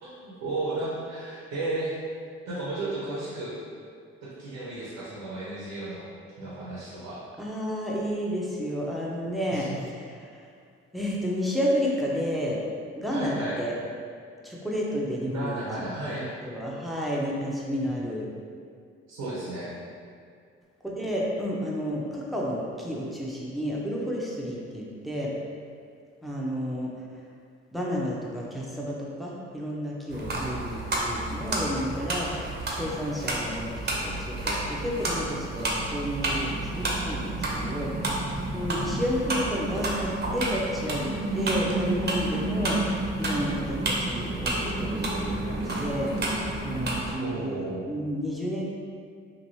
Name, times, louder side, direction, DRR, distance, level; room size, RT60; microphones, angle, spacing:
voice 1, 0.0-1.9 2.5-3.6 4.2-6.1 6.4-7.2 9.5-9.8 13.1-13.6 15.3-16.3 17.7-18.1 19.1-19.7 30.2-30.5 47.2-47.8, right 2 dB, 80° right, -8 dB, 0.8 m, -34 dB
voice 2, 7.4-9.9 10.9-12.6 13.0-13.7 14.4-15.9 16.4-18.4 20.8-25.3 26.2-26.9 27.7-46.1 46.6-48.8, equal, ahead, -4 dB, 0.7 m, -31 dB
sound 1, 30.1-47.2, right 2 dB, 35° right, 0.7 m, -30 dB
3.0 x 2.6 x 2.7 m, 2.2 s
hypercardioid pair, 45°, 29 cm